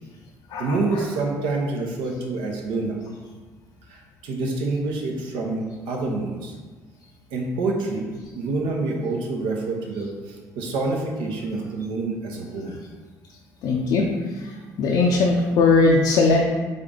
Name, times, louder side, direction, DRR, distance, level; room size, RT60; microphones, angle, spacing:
voice 1, 0.5-3.0 3.9-6.5 7.3-12.8 14.5-14.6 15.1-15.2, right 3 dB, 80° right, 0 dB, 0.9 m, -27 dB
voice 2, 13.6-14.0 14.8-16.4, left 3 dB, 70° left, -1 dB, 0.6 m, -19 dB
3.7 x 3.7 x 3.7 m, 1.3 s
supercardioid pair, 70°, 8 cm